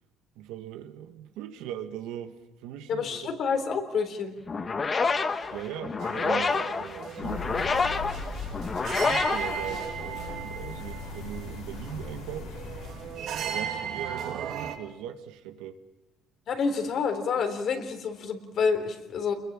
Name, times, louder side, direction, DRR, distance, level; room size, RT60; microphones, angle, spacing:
voice 1, 0.4-3.3 5.5-7.7 9.0-12.6 13.4-15.8, right 10 dB, 90° right, 7 dB, 1.9 m, -39 dB
voice 2, 2.9-4.4 16.5-19.3, left 5 dB, 55° left, 6 dB, 3.8 m, -28 dB
sound 1, 4.5-10.3, left 4 dB, 30° left, 1.3 m, -28 dB
sound 2, 6.0-14.8, right 8 dB, 65° right, 2.9 m, -37 dB
sound 3, 7.2-13.5, left 3 dB, 80° left, 6.6 m, -39 dB
29.0 x 22.0 x 7.5 m, 0.99 s
cardioid pair, 115°, 0 cm